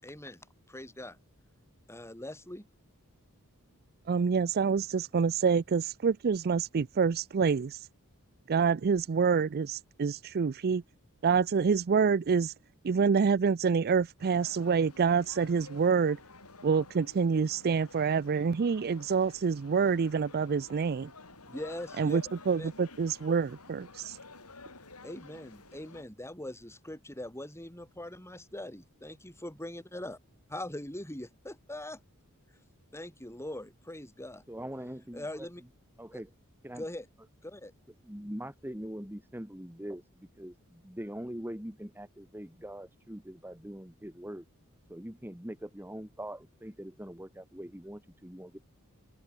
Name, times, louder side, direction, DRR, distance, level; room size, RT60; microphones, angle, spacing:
voice 1, 0.0-0.4 0.7-1.2 1.9-2.6 21.5-22.2 22.6-22.7 25.0-30.2 30.5-32.0 32.9-34.4 35.1-35.6 36.1-36.2 36.8-37.1 37.4-37.7, left 1 dB, 10° left, 7.8 m, -41 dB
voice 2, 4.1-7.9 8.5-10.8 11.2-12.5 12.8-16.2 16.6-21.1 22.0-24.2, right 5 dB, 45° right, 0.4 m, -27 dB
sound 1, 14.2-26.0, left 3 dB, 80° left, 6.9 m, -51 dB
voice 3, 34.5-35.5 36.0-36.3 36.6-36.8 38.0-44.4 44.9-48.6, equal, 10° right, 3.2 m, -42 dB
open air
head